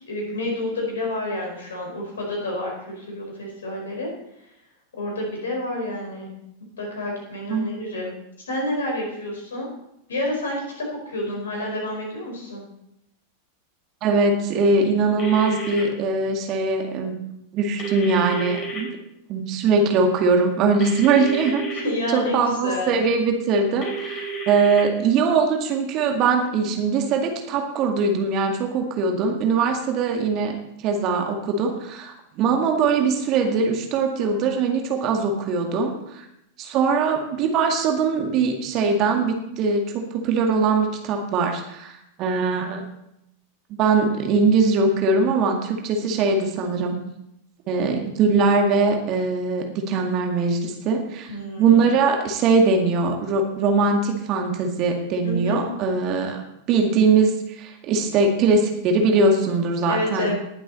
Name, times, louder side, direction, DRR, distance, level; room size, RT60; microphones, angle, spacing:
voice 1, 0.1-4.1 5.0-6.3 6.8-8.1 8.5-9.7 10.1-12.6 21.8-23.0 51.3-51.8 55.2-55.6 59.9-60.3, left 1 dB, 65° left, 0 dB, 4.8 m, -29 dB
voice 2, 14.0-17.1 17.5-18.9 19.3-21.7 22.1-30.6 30.8-36.2 36.6-42.8 43.8-47.0 47.7-51.3 51.6-60.3, right 4 dB, 40° right, 3 dB, 2.0 m, -21 dB
sound 1, 15.2-15.8 17.8-18.8 20.8-21.8 23.8-24.8, right 3 dB, 35° left, 4.2 m, -31 dB
19.5 x 7.7 x 4.2 m, 0.80 s
figure-of-eight pair, 90°, 0 cm